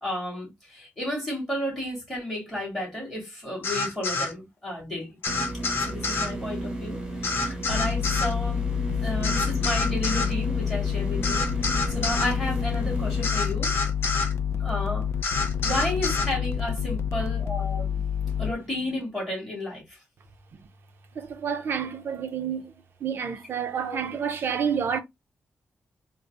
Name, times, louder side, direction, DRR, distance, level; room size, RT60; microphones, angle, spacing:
voice 1, 0.0-5.2 5.5-8.6 9.0-13.7 14.6-15.1 15.6-17.9 18.4-20.0 23.8-24.0, left 1 dB, 5° left, 2.2 m, -32 dB
sound 1, 3.6-4.3 5.2-6.3 7.2-8.3 9.2-10.3 11.2-12.3 13.2-14.3 15.2-16.3, left 3 dB, 55° left, 0.9 m, -28 dB
sound 2, 5.3-13.3, right 2 dB, 15° right, 1.0 m, -34 dB
sound 3, 7.7-18.5, left 8 dB, 70° left, 0.4 m, -28 dB
voice 2, 21.2-22.7 23.0-25.0, right 7 dB, 55° right, 0.5 m, -29 dB
3.8 x 2.0 x 3.4 m
wide cardioid pair, 170°, 5 cm